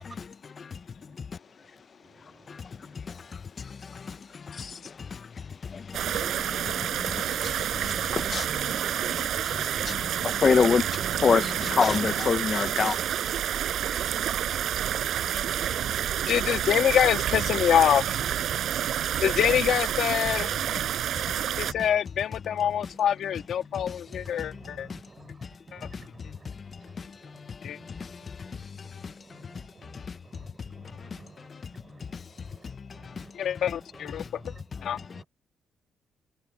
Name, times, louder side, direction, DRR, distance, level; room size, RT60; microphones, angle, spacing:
voice 1, 0.0-0.8 1.2-1.3 2.5-13.0 13.3-13.4 15.3-15.4 20.8-20.9 21.3-21.4 23.9-24.0 24.9-25.0 25.4-25.5 25.8-26.1 26.4-30.2 31.0-31.7 32.0-32.3 32.6-33.3 34.2-34.3 35.0-35.2, left 5 dB, 40° left, 0.7 m, -30 dB
sound 1, 5.9-21.7, right 10 dB, 70° right, 5.5 m, -29 dB
voice 2, 16.3-18.1 19.2-20.5 21.6-24.9 25.7-25.9 27.6-27.8 33.3-34.4 34.8-35.0, left 9 dB, 70° left, 2.5 m, -25 dB
voice 3, 24.6-25.3 25.7-26.9 27.8-28.1 28.8-28.9 29.2-31.5 31.8-32.0 32.4-33.3 34.4-34.6 35.1-35.3, right 4 dB, 30° right, 6.6 m, -53 dB
cardioid pair, 90°, 0 cm